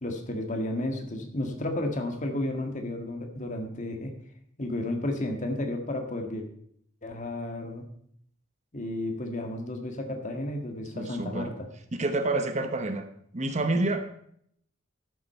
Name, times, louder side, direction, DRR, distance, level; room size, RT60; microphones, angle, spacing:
voice 1, 0.0-4.1 4.6-6.5 7.0-7.9 8.7-11.7, left 1 dB, 40° left, 4 dB, 1.7 m, -32 dB
voice 2, 10.9-11.5 11.9-13.1 13.3-14.1, right 2 dB, 35° right, 8 dB, 1.0 m, -28 dB
12.5 x 7.5 x 5.6 m, 0.67 s
head